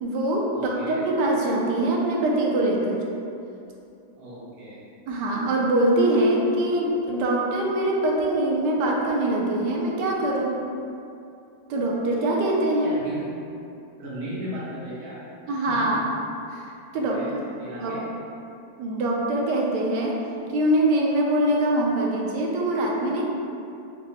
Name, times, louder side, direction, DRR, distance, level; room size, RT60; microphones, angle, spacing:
voice 1, 0.0-3.0 5.1-10.6 11.7-12.9 15.5-16.0 16.5-17.2 17.7-17.9 18.8-20.2 20.5-23.2, right 1 dB, 85° right, -2 dB, 1.3 m, -23 dB
voice 2, 0.5-1.0 4.2-4.9 12.8-13.3 14.0-15.2 15.6-15.9 16.9-18.0, equal, 40° right, -10 dB, 1.3 m, -37 dB
5.1 x 2.2 x 3.9 m, 2.6 s
omnidirectional pair, 1.8 m